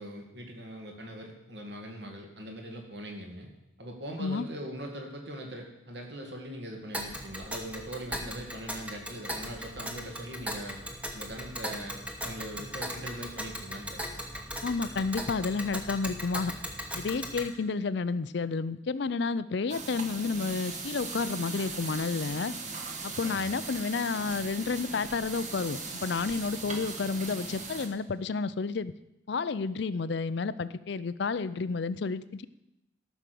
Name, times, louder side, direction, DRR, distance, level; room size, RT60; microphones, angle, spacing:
voice 1, 0.0-3.5 3.8-10.8 11.1-13.9 23.2-23.5, equal, 60° right, 1 dB, 2.3 m, -41 dB
Tick, 6.9-17.5, equal, 5° right, 1.1 m, -38 dB
voice 2, 14.6-16.5 16.9-22.5 23.0-28.9 29.3-32.4, left 4 dB, 60° left, 15 dB, 0.4 m, -31 dB
sound 1, 19.7-27.9, right 4 dB, 35° right, 1.3 m, -39 dB
13.5 x 6.2 x 6.9 m, 0.90 s
head